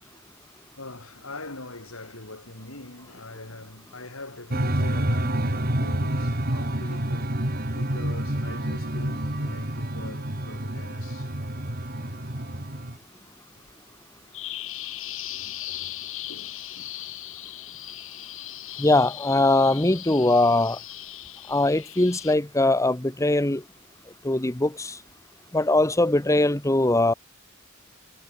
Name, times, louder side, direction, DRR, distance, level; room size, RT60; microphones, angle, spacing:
voice 1, 0.8-7.4 7.7-11.3 15.3-16.0 16.3-17.1, left 2 dB, 85° left, 6.2 m, -43 dB
sound 1, 4.5-13.0, right 1 dB, 50° right, 3.8 m, -28 dB
Bird vocalization bird call bird song, 14.3-22.3, left 14 dB, 70° left, 2.9 m, -38 dB
voice 2, 18.8-20.8 21.5-23.6 24.2-25.0 25.5-27.1, left 2 dB, 15° left, 1.2 m, -21 dB
head